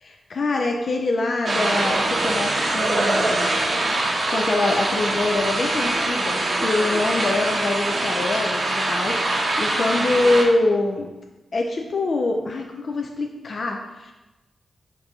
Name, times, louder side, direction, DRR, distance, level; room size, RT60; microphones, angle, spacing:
voice 1, 0.0-3.6 3.9-11.1 11.5-14.1, left 2 dB, 60° left, 2 dB, 0.3 m, -24 dB
sound 1, 1.4-10.4, right 2 dB, 55° right, 0.7 m, -23 dB
3.8 x 2.7 x 3.4 m, 1.1 s
cardioid pair, 65°, 0 cm